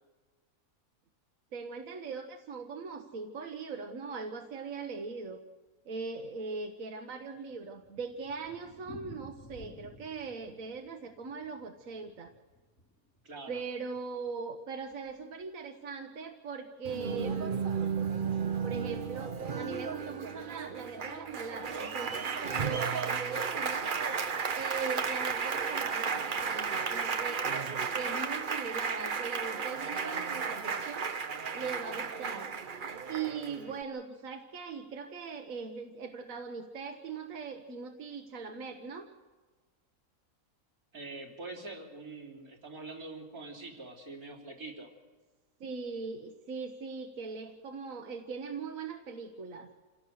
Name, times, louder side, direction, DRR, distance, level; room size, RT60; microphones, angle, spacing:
voice 1, 1.5-5.4 5.8-12.3 13.5-17.7 18.6-23.9 24.5-27.4 27.9-31.1 31.5-32.6 33.1-39.1 45.6-49.7, right 5 dB, 70° right, 4 dB, 1.5 m, -40 dB
Thunder, 7.3-13.3 13.5-13.6 13.9-14.0 14.2-14.3 14.9-15.2, left 1 dB, 80° left, 4.8 m, -53 dB
voice 2, 13.2-13.6 40.9-44.9, right 3 dB, 90° right, 0 dB, 4.0 m, -44 dB
Applause, 16.8-33.8, right 6 dB, 40° right, 0.9 m, -34 dB
27.5 x 17.0 x 6.5 m, 1.3 s
omnidirectional pair, 1.5 m